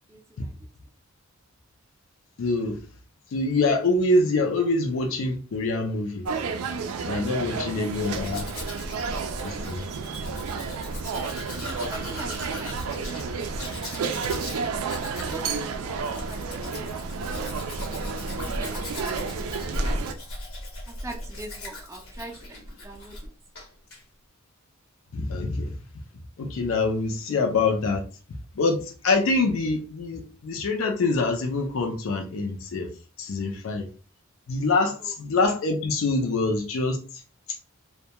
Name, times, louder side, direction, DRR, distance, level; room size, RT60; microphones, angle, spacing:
voice 1, 0.1-0.7 7.4-7.5 11.6-14.8 15.1-17.8 18.4-19.3 20.9-23.2 35.0-35.1, right 2 dB, 15° right, 2 dB, 0.4 m, -43 dB
voice 2, 2.4-2.8 3.3-6.3 7.1-8.5 9.4-9.8 25.1-25.7 26.4-28.0 28.6-32.9 33.2-33.9 34.5-37.2 37.5-37.6, left 3 dB, 70° left, 2 dB, 0.4 m, -25 dB
sound 1, 6.3-20.1, right 5 dB, 85° right, 0.4 m, -31 dB
Domestic sounds home sounds, 7.8-23.3 23.5-24.0, left 1 dB, 85° left, 1.0 m, -37 dB
2.2 x 2.2 x 2.8 m, 0.37 s
head